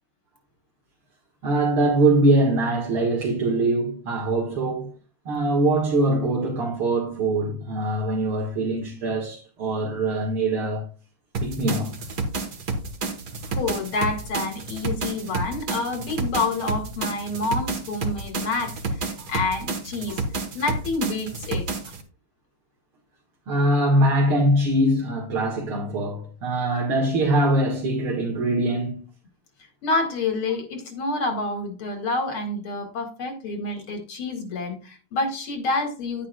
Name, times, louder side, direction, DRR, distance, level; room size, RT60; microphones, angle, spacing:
voice 1, 1.4-4.9 5.3-10.8 11.4-12.0 19.2-19.3 23.5-29.1, right 1 dB, 85° right, 2.6 m, -22 dB
sound 1, 11.3-22.0, right 3 dB, 50° right, 1.8 m, -30 dB
voice 2, 13.5-20.2 20.5-21.7 29.8-36.3, left 3 dB, 80° left, 2.7 m, -28 dB
10.5 x 9.5 x 2.3 m
omnidirectional pair, 2.3 m